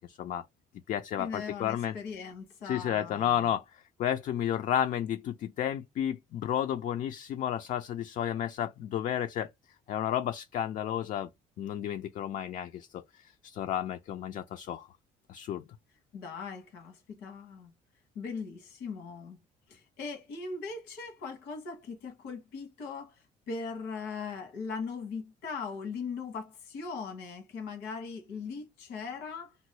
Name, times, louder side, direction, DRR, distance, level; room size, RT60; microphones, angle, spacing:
voice 1, 0.1-0.4 0.9-1.9 2.6-9.5 9.9-11.3 11.6-14.9 15.3-15.6, left 10 dB, 50° left, 0.4 m, -32 dB
voice 2, 1.2-3.4 16.1-17.7 18.1-19.4 19.7-23.2 23.5-29.6, left 5 dB, 90° left, 1.4 m, -39 dB
3.0 x 2.6 x 3.0 m
cardioid pair, 110°, 17 cm